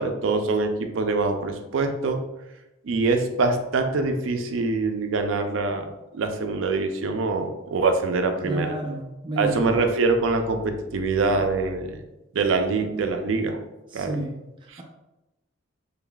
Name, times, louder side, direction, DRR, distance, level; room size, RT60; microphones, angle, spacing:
voice 1, 0.0-2.2 2.8-5.8 6.1-8.7 9.4-12.0 12.3-13.6 13.9-14.2 14.7-14.8, right 3 dB, 85° right, 6 dB, 0.4 m, -24 dB
voice 2, 8.4-9.6 13.9-14.4 14.6-14.8, right 1 dB, 25° right, -1 dB, 0.4 m, -30 dB
3.8 x 3.4 x 2.3 m, 0.98 s
head